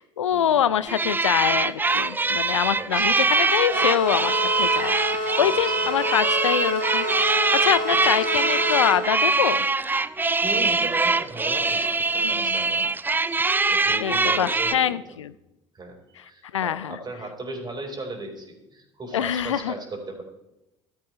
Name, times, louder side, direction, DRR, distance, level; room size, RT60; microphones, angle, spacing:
voice 1, 0.0-9.7 12.2-12.9 14.0-15.3 16.5-17.0 19.1-19.7, left 10 dB, 85° left, 16 dB, 0.4 m, -25 dB
sound 1, 0.9-14.7, right 3 dB, 15° right, 0.5 m, -23 dB
voice 2, 2.7-3.2 5.4-5.9 8.2-8.3 10.4-12.8 13.7-15.2 15.7-15.9 16.2-20.2, right 2 dB, 30° right, 2 dB, 4.3 m, -36 dB
sound 2, 3.7-9.0, equal, 60° right, 3.1 m, -28 dB
15.0 x 13.0 x 3.2 m, 0.92 s
hypercardioid pair, 60°, 15 cm